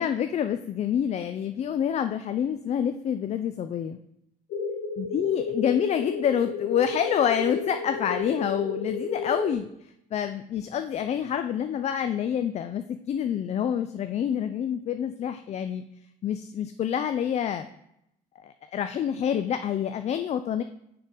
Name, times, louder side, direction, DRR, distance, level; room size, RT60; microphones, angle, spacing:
voice 1, 0.0-4.0 5.0-15.8 16.2-17.7 18.4-20.6, left 9 dB, 40° left, 9 dB, 0.4 m, -27 dB
sound 1, 4.5-9.5, left 4 dB, 80° left, 1.5 m, -32 dB
9.4 x 3.8 x 4.1 m, 0.79 s
cardioid pair, 110°, 17 cm